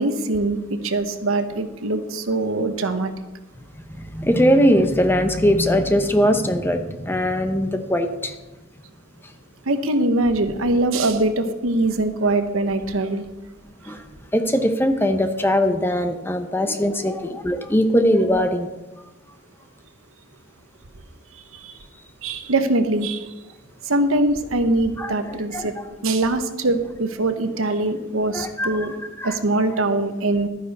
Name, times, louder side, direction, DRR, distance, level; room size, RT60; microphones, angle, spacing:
voice 1, 0.0-3.1 9.7-13.2 13.9-14.0 21.3-21.7 22.2-23.3 23.8-25.7 26.0-29.0 29.2-30.5, right 2 dB, 80° right, 9 dB, 1.0 m, -22 dB
voice 2, 3.9-8.3 13.9-14.0 14.3-18.7 25.0-25.1 25.5-25.7 28.3-29.4, equal, 10° left, 7 dB, 0.8 m, -20 dB
12.0 x 9.9 x 4.1 m, 1.1 s
head